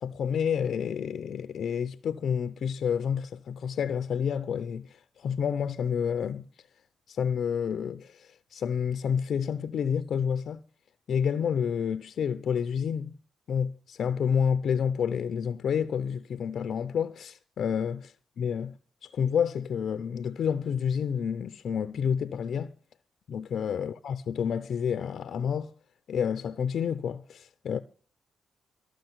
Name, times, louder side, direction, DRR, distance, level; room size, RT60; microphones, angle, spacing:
voice 1, 0.0-6.5 7.1-10.6 11.1-13.2 13.5-18.8 19.0-22.7 23.3-25.7 26.1-27.8, left 7 dB, 65° left, 0.5 m, -29 dB
13.5 x 6.4 x 8.0 m
supercardioid pair, 65°, 0 cm